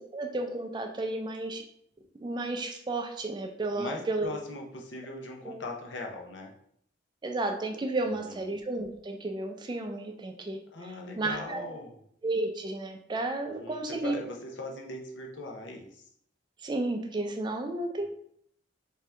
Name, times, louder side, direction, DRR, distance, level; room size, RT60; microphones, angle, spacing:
voice 1, 0.1-1.6 2.2-4.3 5.4-5.6 7.2-10.6 11.2-11.6 12.2-14.1 16.6-18.1, right 2 dB, 25° right, 4 dB, 0.4 m, -32 dB
voice 2, 3.7-6.5 8.1-8.5 10.7-12.0 13.4-16.1 18.0-18.1, left 2 dB, 85° left, 1 dB, 0.7 m, -40 dB
3.4 x 2.8 x 3.2 m, 0.69 s
head